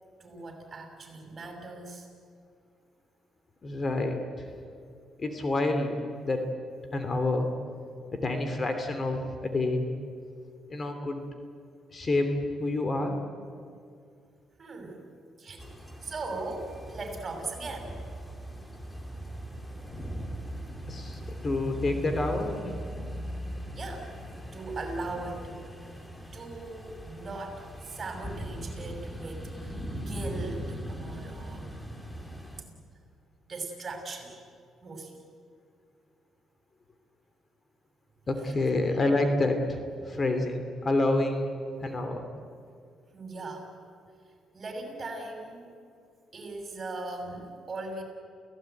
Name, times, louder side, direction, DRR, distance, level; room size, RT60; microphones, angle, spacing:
voice 1, 0.2-2.1 14.6-15.1 15.4-15.7 16.0-18.1 23.7-24.1 24.5-25.6 25.9-26.0 26.3-31.7 33.5-34.3 34.8-35.2 43.1-43.7 44.5-45.7 46.3-48.0, right 3 dB, 40° right, 3 dB, 6.3 m, -39 dB
voice 2, 3.6-4.2 5.2-6.4 6.9-7.5 8.2-9.9 10.7-11.2 11.9-13.2 20.9-22.8 38.3-41.5 41.8-42.2, left 2 dB, 35° left, 7 dB, 2.9 m, -28 dB
sound 1, 15.6-32.6, equal, 10° left, 2.7 m, -40 dB
29.0 x 17.0 x 9.3 m, 2.3 s
cardioid pair, 90°, 0 cm